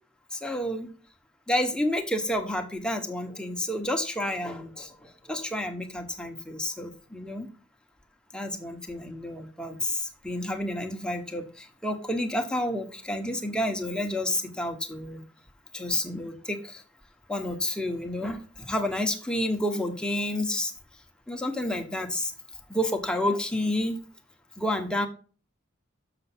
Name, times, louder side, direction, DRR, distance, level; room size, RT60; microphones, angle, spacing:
voice 1, 0.3-0.9 1.5-7.5 8.3-15.2 15.7-16.8 17.3-20.7 21.3-22.3 22.7-24.0 24.6-25.1, left 1 dB, 5° left, 3 dB, 1.2 m, -30 dB
6.8 x 6.8 x 6.1 m, 0.39 s
head